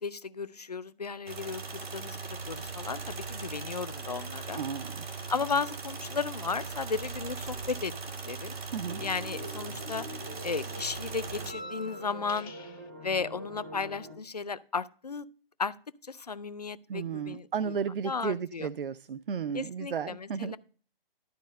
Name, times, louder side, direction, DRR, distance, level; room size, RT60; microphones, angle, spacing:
voice 1, 0.0-4.6 5.3-7.9 8.2-8.6 9.0-10.1 10.4-12.5 13.0-15.3 15.6-15.7 16.0-17.7 18.0-18.7 19.5-20.6, left 5 dB, 45° left, 0.4 m, -34 dB
sound 1, 1.3-11.5, right 4 dB, 85° right, 1.9 m, -39 dB
voice 2, 4.5-5.1 8.7-9.0 16.9-20.5, right 7 dB, 65° right, 0.5 m, -34 dB
sound 2, 5.3-6.1 6.4-9.8 10.0-12.9, left 1 dB, 85° left, 1.7 m, -50 dB
sound 3, 8.8-14.2, equal, 15° right, 0.6 m, -45 dB
12.0 x 4.2 x 6.3 m
hypercardioid pair, 175°, 30 cm